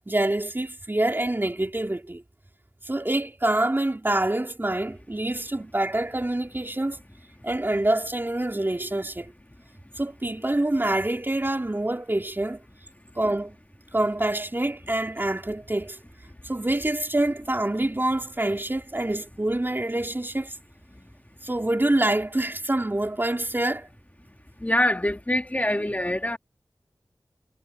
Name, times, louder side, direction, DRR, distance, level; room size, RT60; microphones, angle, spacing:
voice 1, 0.1-2.2 2.8-7.0 7.4-9.3 10.0-12.6 13.2-13.6 13.9-16.0 16.4-20.6 21.4-23.9, right 1 dB, 30° right, 4.1 m, -26 dB
voice 2, 24.6-26.4, left 1 dB, 20° left, 2.2 m, -24 dB
wide cardioid pair, 55°, 7 cm